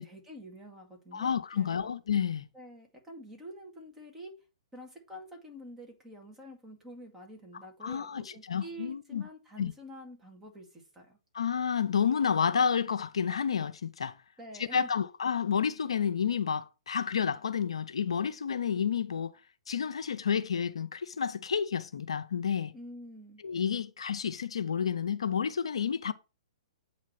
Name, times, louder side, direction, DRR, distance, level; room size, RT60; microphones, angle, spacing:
voice 1, 0.0-1.9 2.5-4.4 4.7-11.2 14.4-14.9 22.7-23.4, equal, 10° right, 2.0 m, -48 dB
voice 2, 1.1-2.4 7.8-9.3 9.6-9.7 11.3-14.2 14.6-19.3 19.7-22.7 23.4-26.1, left 7 dB, 70° left, 0.6 m, -30 dB
8.2 x 3.1 x 5.7 m
figure-of-eight pair, 120°, 3 cm